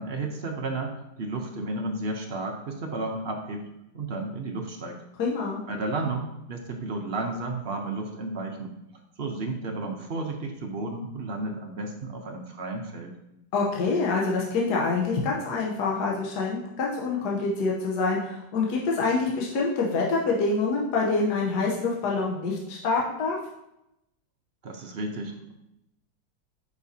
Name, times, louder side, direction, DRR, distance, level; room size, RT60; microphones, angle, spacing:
voice 1, 0.0-3.6 3.9-5.0 5.7-8.7 9.2-13.1 24.6-25.5, right 2 dB, 55° right, 2 dB, 0.7 m, -32 dB
voice 2, 5.2-5.6 13.5-23.4, left 3 dB, 65° left, -2 dB, 1.5 m, -26 dB
8.3 x 5.4 x 2.7 m, 0.86 s
omnidirectional pair, 1.9 m